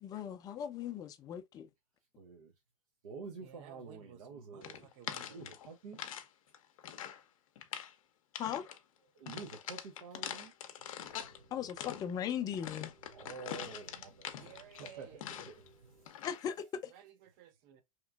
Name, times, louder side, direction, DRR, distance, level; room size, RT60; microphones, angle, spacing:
voice 1, 0.0-1.7 8.4-8.6 11.5-12.9 16.2-16.9, left 9 dB, 20° left, 0.4 m, -38 dB
voice 2, 2.2-2.5 3.0-4.9 5.3-6.0 9.1-10.5 10.8-10.9 11.9-12.5 13.1-16.1, right 4 dB, 85° right, 0.7 m, -49 dB
voice 3, 3.4-5.5 14.4-15.2 16.9-17.8, right 10 dB, 45° right, 0.6 m, -56 dB
sound 1, 4.6-6.3 6.5-7.2 7.6-7.9 8.3-8.8 9.3-11.4 11.7-15.7 16.1-16.5, left 10 dB, 75° left, 0.5 m, -44 dB
sound 2, 11.0-16.1, right 3 dB, 60° right, 1.7 m, -62 dB
2.9 x 2.4 x 2.2 m
hypercardioid pair, 130°, 17 cm